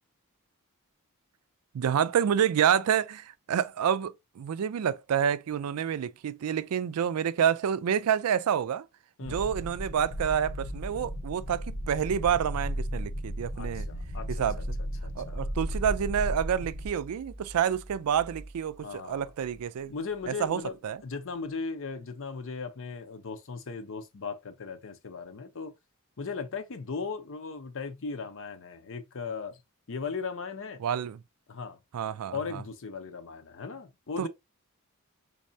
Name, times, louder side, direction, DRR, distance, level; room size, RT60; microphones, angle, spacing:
voice 1, 1.7-8.9 9.2-13.9 14.3-14.8 15.2-19.9 20.3-21.0 30.8-31.2 31.9-32.6 34.2-34.3, right 8 dB, 75° right, 0.4 m, -28 dB
sound 1, 9.3-16.9, equal, 80° left, 1.0 m, -35 dB
voice 2, 13.5-14.4 15.0-15.5 18.8-19.3 19.9-20.8 21.0-25.7 26.2-29.6 29.9-30.8 31.5-31.8 32.3-34.3, left 5 dB, 60° left, 0.7 m, -37 dB
sound 2, 14.9-20.7, right 1 dB, 15° right, 0.4 m, -48 dB
4.1 x 3.2 x 2.7 m
head